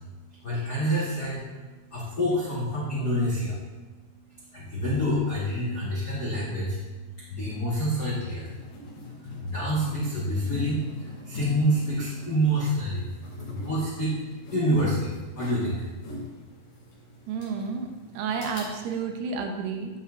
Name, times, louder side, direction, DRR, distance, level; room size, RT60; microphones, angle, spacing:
voice 1, 0.4-1.4 1.9-3.6 4.5-6.8 7.3-8.5 9.4-13.1 13.5-14.1 14.5-15.8, equal, 80° left, -8 dB, 0.8 m, -27 dB
sound 1, 8.4-19.0, left 3 dB, 60° left, 3.7 m, -42 dB
voice 2, 17.3-17.9 18.1-19.9, right 5 dB, 85° right, 4 dB, 2.8 m, -30 dB
13.0 x 5.5 x 2.5 m, 1.3 s
omnidirectional pair, 4.6 m